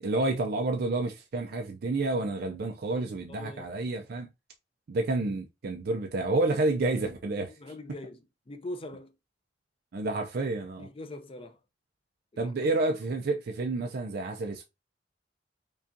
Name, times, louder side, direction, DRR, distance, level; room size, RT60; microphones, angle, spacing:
voice 1, 0.0-4.3 4.9-7.5 9.9-10.9 12.4-14.6, right 2 dB, 55° right, 0.4 m, -29 dB
voice 2, 3.3-3.7 7.5-9.2 10.8-11.6 12.3-12.7, left 1 dB, 30° left, 0.5 m, -42 dB
5.1 x 2.3 x 2.6 m
head